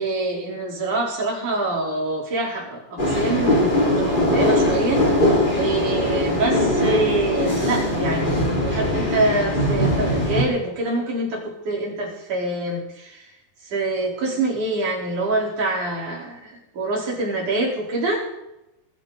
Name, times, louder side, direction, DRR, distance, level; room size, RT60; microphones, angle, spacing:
voice 1, 0.0-13.3 13.6-18.2, right 2 dB, 85° right, -2 dB, 5.6 m, -25 dB
sound 1, 3.0-10.4, left 1 dB, 15° left, 2.9 m, -21 dB
21.5 x 13.5 x 4.0 m, 0.87 s
omnidirectional pair, 3.4 m